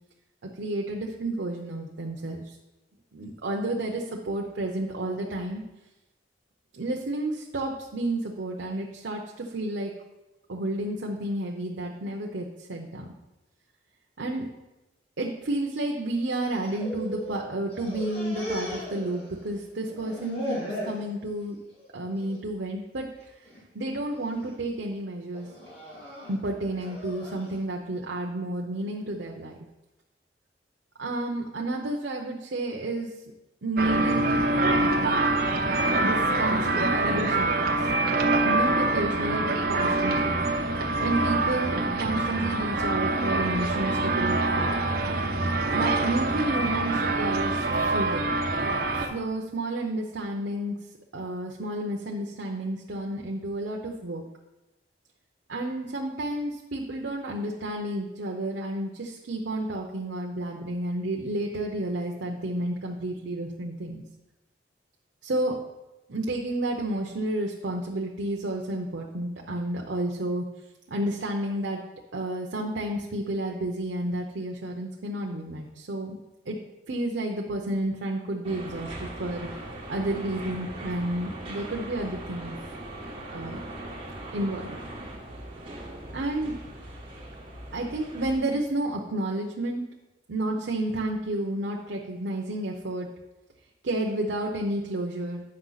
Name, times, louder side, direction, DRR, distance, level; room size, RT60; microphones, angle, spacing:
voice 1, 0.6-2.6 3.1-5.6 6.8-9.9 10.5-13.1 14.2-14.5 15.2-21.6 21.9-23.1 23.7-25.5 26.3-29.6 31.0-33.1 33.6-35.2 36.0-37.7 38.4-40.4 41.0-44.7 45.7-48.3 49.1-50.8 51.1-54.2 55.5-64.0 65.2-65.6 66.1-70.4 70.9-71.8 72.1-76.2 76.5-76.6 76.9-79.6 79.9-82.5 83.3-83.6 84.3-84.8 86.1-86.6 87.7-89.8 90.3-93.1 93.8-95.4, right 1 dB, 85° right, 0 dB, 0.8 m, -31 dB
sound 1, 16.3-17.4 17.7-19.6 19.9-21.0 21.5-21.9 22.2-22.4 23.2-23.6 24.1-24.5 25.3-27.5, left 1 dB, 65° left, 2.8 m, -37 dB
sound 2, 33.8-49.1, right 2 dB, 55° right, 0.8 m, -25 dB
sound 3, 78.4-88.3, right 1 dB, 30° right, 1.5 m, -40 dB
8.7 x 5.6 x 4.0 m, 1.0 s
head